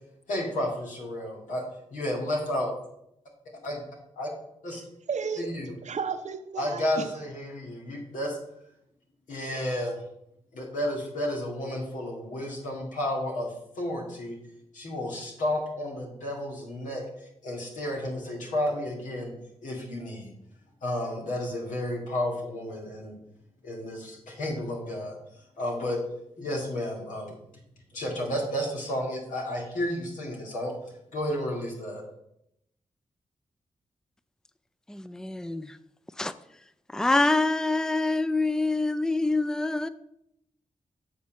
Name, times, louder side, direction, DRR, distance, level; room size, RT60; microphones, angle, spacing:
voice 1, 0.3-1.6 1.9-2.7 3.6-3.8 4.2-4.3 4.6-4.8 5.4-5.7 6.6-8.4 9.3-10.0 10.5-14.4 14.7-19.3 19.6-20.3 20.8-23.2 23.6-25.2 25.6-26.0 26.4-27.4 27.9-30.7 31.1-32.0, left 1 dB, 85° left, 2.2 m, -32 dB
voice 2, 4.7-7.1, right 6 dB, 65° right, 0.8 m, -34 dB
voice 3, 34.9-35.8 36.2-36.3 36.9-39.9, left 2 dB, 5° left, 0.5 m, -26 dB
7.9 x 4.1 x 6.1 m
supercardioid pair, 40°, 13 cm